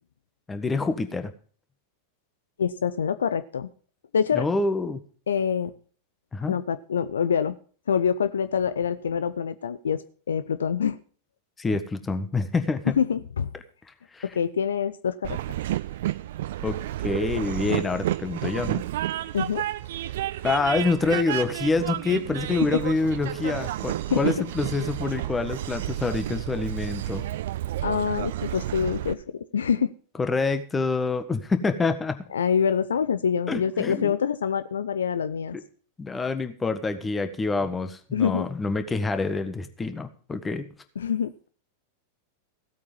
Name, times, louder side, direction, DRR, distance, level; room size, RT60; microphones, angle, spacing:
voice 1, 0.5-1.3 4.3-5.0 6.3-6.6 11.6-12.9 14.1-14.2 16.6-16.8 17.0-18.8 20.4-27.2 30.2-32.2 33.5-34.1 36.0-40.7, left 3 dB, 15° left, 9 dB, 1.6 m, -26 dB
voice 2, 2.6-3.7 4.1-4.5 5.3-5.7 6.5-7.5 7.9-11.0 13.0-13.5 14.2-15.4 19.3-19.6 22.7-22.8 23.4-23.5 24.1-24.3 27.8-29.9 32.3-35.6 38.1-38.5 41.0-41.5, left 7 dB, 65° left, 14 dB, 0.6 m, -25 dB
Train, 15.2-29.1, right 14 dB, 55° right, 1.0 m, -31 dB
16.0 x 8.6 x 5.4 m, 0.43 s
figure-of-eight pair, 90°, 0 cm